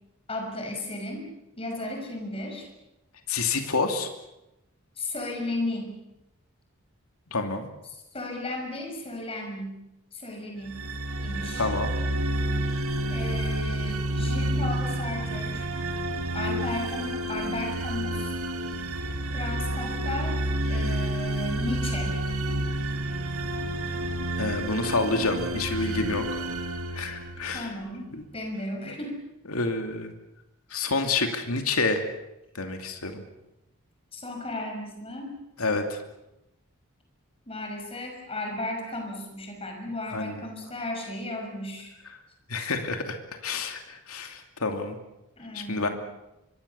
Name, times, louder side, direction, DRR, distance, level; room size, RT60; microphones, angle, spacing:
voice 1, 0.3-1.3 1.6-2.7 5.0-6.0 7.9-9.8 10.1-10.9 11.2-11.7 13.1-15.6 16.3-18.3 19.3-20.4 20.7-22.2 27.5-29.2 34.1-35.4 37.5-41.9 45.4-45.9, left 2 dB, 25° left, 3 dB, 6.0 m, -35 dB
voice 2, 3.3-4.1 7.3-7.7 11.6-12.0 24.4-26.4 26.9-27.7 28.1-28.2 29.5-30.1 30.7-32.0 32.5-33.2 35.6-36.0 40.1-40.4 42.5-45.0 45.5-45.9, left 3 dB, 80° left, 5 dB, 2.6 m, -28 dB
sound 1, 10.6-27.8, right 1 dB, 80° right, 1.9 m, -29 dB
24.5 x 24.0 x 7.0 m, 0.92 s
head